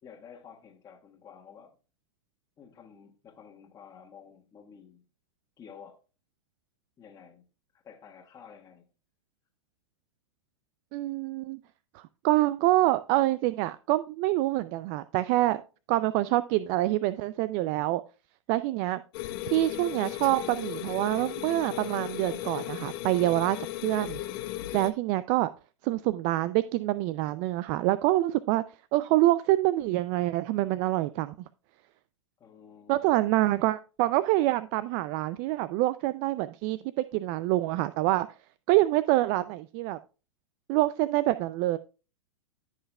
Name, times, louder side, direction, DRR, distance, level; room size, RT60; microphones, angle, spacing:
voice 1, 0.0-1.8 2.6-5.0 5.6-6.0 7.0-7.4 7.7-8.8 32.4-33.5, left 7 dB, 25° left, 1.5 m, -51 dB
voice 2, 10.9-11.6 11.9-15.6 15.9-18.0 18.5-19.0 19.5-23.6 23.8-24.2 24.7-25.5 25.8-28.6 28.9-31.3 32.9-38.3 38.7-40.0 40.7-41.8, right 16 dB, 40° right, 0.4 m, -26 dB
sound 1, 19.1-24.9, left 14 dB, 50° left, 1.0 m, -36 dB
14.0 x 5.7 x 2.3 m
hypercardioid pair, 120°, 15 cm